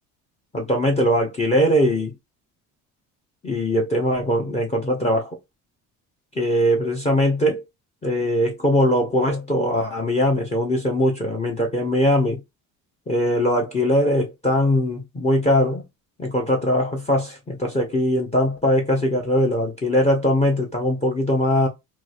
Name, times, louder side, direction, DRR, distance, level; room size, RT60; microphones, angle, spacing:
voice 1, 0.5-2.1 3.4-5.4 6.4-7.6 8.0-12.4 13.1-15.8 16.2-21.7, left 1 dB, 20° left, 0.7 m, -21 dB
2.9 x 2.4 x 2.5 m
cardioid pair, 100°, 36 cm